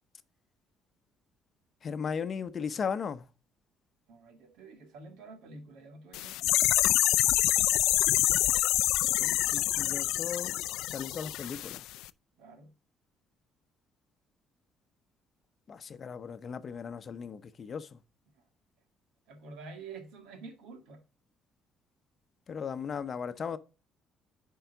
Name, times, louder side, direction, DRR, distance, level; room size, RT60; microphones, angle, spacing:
voice 1, 1.8-3.3 9.2-10.6 10.9-11.9 15.7-18.0 22.5-23.6, left 6 dB, 35° left, 0.7 m, -37 dB
voice 2, 4.1-6.6 12.4-12.7 18.4-18.5 19.3-21.0, right 4 dB, 90° right, 2.0 m, -48 dB
sound 1, 6.1-11.8 12.0-12.1, left 16 dB, 90° left, 0.3 m, -26 dB
10.5 x 4.6 x 3.9 m
cardioid pair, 135°, 0 cm